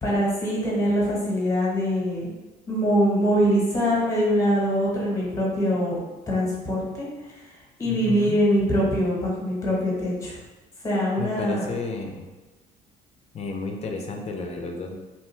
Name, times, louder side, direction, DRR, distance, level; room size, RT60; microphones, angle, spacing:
voice 1, 0.0-2.3 2.7-6.0 6.3-7.5 7.8-10.4 10.8-11.7, equal, 20° left, -4 dB, 1.1 m, -23 dB
voice 2, 7.8-8.4 11.2-12.3 13.3-15.0, left 3 dB, 40° left, 3 dB, 0.5 m, -32 dB
2.8 x 2.2 x 3.1 m, 1.2 s
cardioid pair, 110°, 17 cm